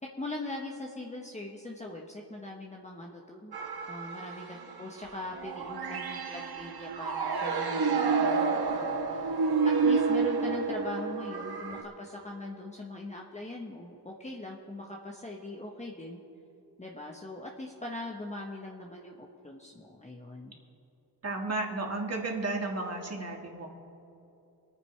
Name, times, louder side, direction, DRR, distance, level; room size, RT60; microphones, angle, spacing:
voice 1, 0.2-3.6 3.9-16.2 16.8-20.6, left 2 dB, 15° left, -1 dB, 1.2 m, -41 dB
sound 1, 3.5-11.8, right 4 dB, 60° right, 1.2 m, -29 dB
voice 2, 21.2-23.7, right 2 dB, 35° right, 1 dB, 2.1 m, -33 dB
24.0 x 9.4 x 3.4 m, 2.8 s
cardioid pair, 75°, 42 cm